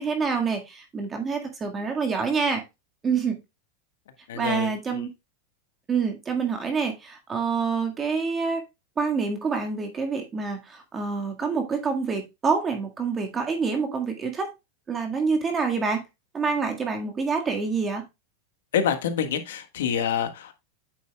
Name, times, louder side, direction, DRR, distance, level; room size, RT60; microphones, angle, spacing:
voice 1, 0.0-2.6 3.0-3.4 4.3-5.1 5.9-8.6 9.0-14.5 14.9-16.0 16.3-18.0, right 5 dB, 25° right, 4 dB, 1.7 m, -27 dB
voice 2, 4.3-5.0 18.7-20.5, left 8 dB, 80° left, 8 dB, 1.4 m, -27 dB
9.0 x 6.7 x 2.2 m, 0.23 s
supercardioid pair, 120°, 0 cm